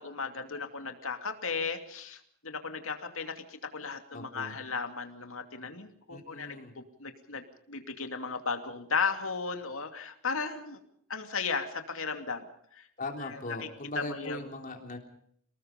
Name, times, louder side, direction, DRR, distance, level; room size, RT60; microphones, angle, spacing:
voice 1, 0.0-10.8 11.1-12.4 12.7-12.9 14.1-14.4, left 5 dB, 65° left, 6 dB, 2.7 m, -35 dB
voice 2, 4.1-4.5 6.1-6.8 13.0-15.0, left 2 dB, 40° left, 4 dB, 3.7 m, -39 dB
29.5 x 20.0 x 5.3 m, 0.65 s
head